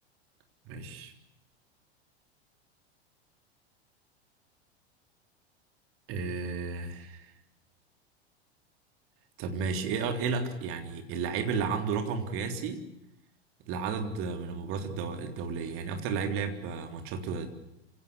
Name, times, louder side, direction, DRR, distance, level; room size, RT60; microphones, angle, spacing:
voice 1, 0.7-1.1 6.1-7.3 9.4-12.8 13.7-17.5, right 5 dB, 40° right, 6 dB, 3.6 m, -33 dB
26.5 x 17.0 x 9.9 m, 0.86 s
figure-of-eight pair, 85°, 32 cm